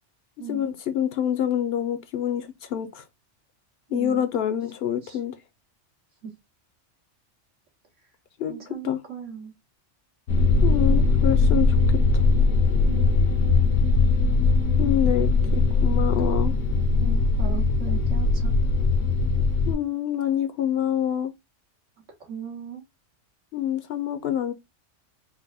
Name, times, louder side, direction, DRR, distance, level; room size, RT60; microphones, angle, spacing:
voice 1, 0.5-3.0 3.9-5.3 8.4-8.6 8.8-9.0 10.6-12.2 14.8-16.5 19.7-21.3 23.5-24.5, left 10 dB, 65° left, 0.7 m, -26 dB
voice 2, 3.9-4.3 5.0-5.2 6.2-6.3 8.5-9.5 12.9-13.2 17.0-18.5 22.2-22.8, right 7 dB, 85° right, 2.0 m, -37 dB
sound 1, 10.3-19.7, left 3 dB, 90° left, 1.3 m, -20 dB
4.6 x 2.1 x 4.0 m
omnidirectional pair, 1.2 m